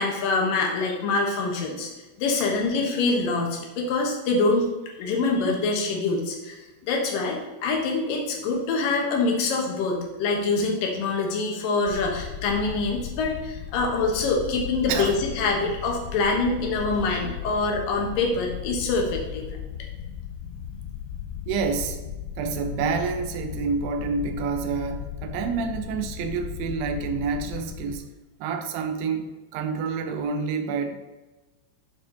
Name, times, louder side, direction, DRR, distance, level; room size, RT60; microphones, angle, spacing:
voice 1, 0.0-1.9 2.2-4.7 5.0-19.5, left 3 dB, 65° left, 0 dB, 2.3 m, -25 dB
sound 1, 11.9-28.0, left 10 dB, 85° left, 2.4 m, -36 dB
voice 2, 21.5-22.0 22.4-28.1 28.4-31.0, right 5 dB, 80° right, 6 dB, 2.4 m, -28 dB
12.0 x 4.6 x 4.0 m, 1.1 s
omnidirectional pair, 5.5 m